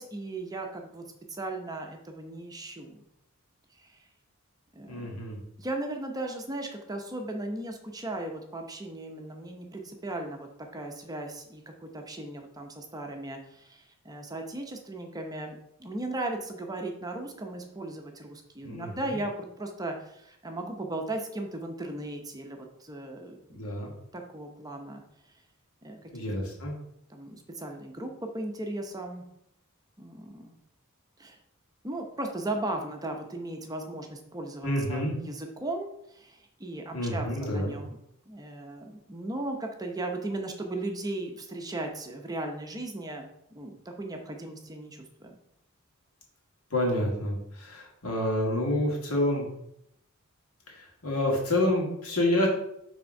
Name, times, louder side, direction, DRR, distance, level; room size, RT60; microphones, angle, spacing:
voice 1, 0.0-3.1 3.7-4.0 4.7-5.2 5.6-23.7 24.1-25.0 25.8-26.1 27.1-29.2 30.0-30.5 31.2-31.4 31.8-38.0 38.3-43.3 43.5-45.3, right 2 dB, 15° right, 3 dB, 0.7 m, -37 dB
voice 2, 4.9-5.4 18.6-18.9 23.5-23.9 26.1-26.7 34.6-35.2 36.9-37.7 46.7-49.5 50.7-52.5, left 1 dB, 80° left, -1 dB, 2.0 m, -28 dB
6.1 x 3.5 x 5.2 m, 0.75 s
head